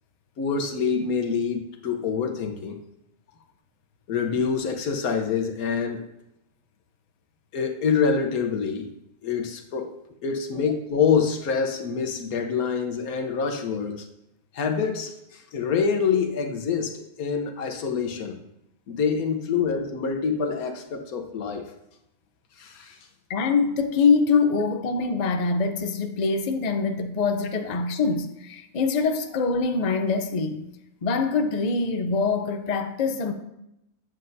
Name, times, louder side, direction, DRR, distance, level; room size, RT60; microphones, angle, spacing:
voice 1, 0.4-2.8 4.1-6.1 7.5-8.9 9.2-10.0 10.2-14.1 14.5-18.4 18.9-21.6 22.6-23.0, left 6 dB, 90° left, 1.4 m, -26 dB
voice 2, 23.3-30.6 31.0-33.3, left 4 dB, 45° left, 0.6 m, -24 dB
8.7 x 7.7 x 2.7 m
omnidirectional pair, 1.5 m